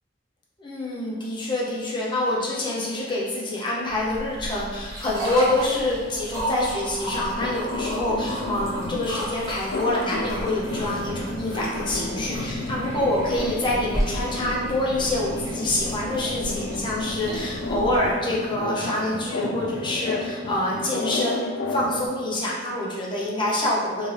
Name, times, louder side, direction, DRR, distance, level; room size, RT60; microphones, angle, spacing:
voice 1, 0.6-24.1, left 1 dB, 25° left, -5 dB, 0.7 m, -26 dB
sound 1, 3.9-18.1, equal, 20° right, 0.8 m, -34 dB
sound 2, 7.1-22.1, left 2 dB, 85° left, 0.3 m, -32 dB
2.7 x 2.7 x 3.1 m, 1.5 s
head